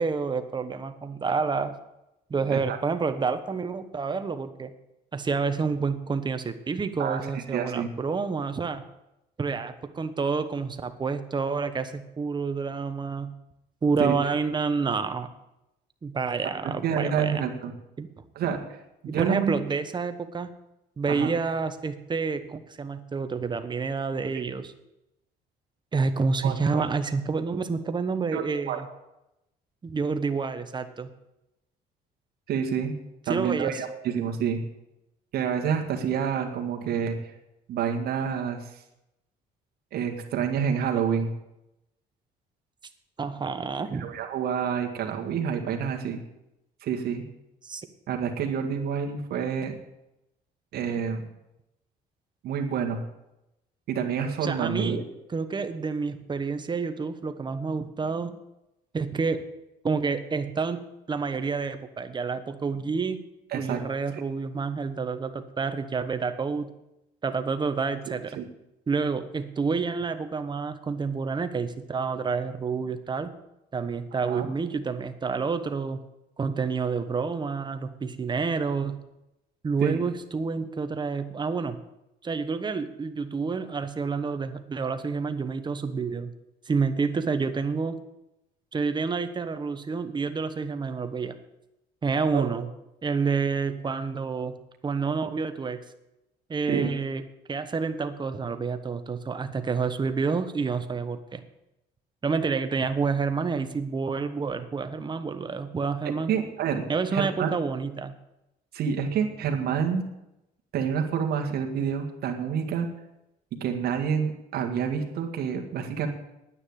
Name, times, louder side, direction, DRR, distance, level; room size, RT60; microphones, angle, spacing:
voice 1, 0.0-1.7 2.3-4.7 5.1-8.8 9.4-13.3 13.8-15.3 16.0-17.4 18.0-18.1 19.0-20.5 21.0-24.7 25.9-28.8 29.8-31.1 33.3-33.7 43.2-44.1 47.6-47.8 54.4-55.0 55.3-58.4 58.9-59.4 59.8-63.2 63.5-66.7 67.2-68.4 68.9-73.3 73.7-76.0 76.4-79.0 79.6-81.8 82.2-86.3 86.7-88.0 88.7-91.4 92.0-92.7 93.0-94.6 94.8-95.8 96.5-97.2 97.5-101.4 102.2-106.3 106.9-108.1, right 5 dB, 25° right, 9 dB, 1.2 m, -29 dB
voice 2, 7.0-7.9 14.0-14.1 16.4-16.5 16.8-17.7 18.4-18.6 19.0-19.6 21.1-21.3 26.4-26.9 28.3-28.8 32.5-32.9 33.3-34.6 35.3-37.2 37.7-38.7 39.9-41.3 43.9-46.2 46.8-47.2 48.1-49.7 50.7-51.3 52.4-53.0 53.9-55.0 63.5-63.8 68.4-68.5 74.3-74.5 79.8-80.0 92.3-92.5 96.7-96.9 106.0-106.8 107.1-107.5 108.7-110.0 110.7-112.9 113.6-116.1, right 7 dB, 70° right, 4 dB, 1.9 m, -28 dB
9.8 x 9.6 x 8.7 m, 0.90 s
cardioid pair, 110°, 17 cm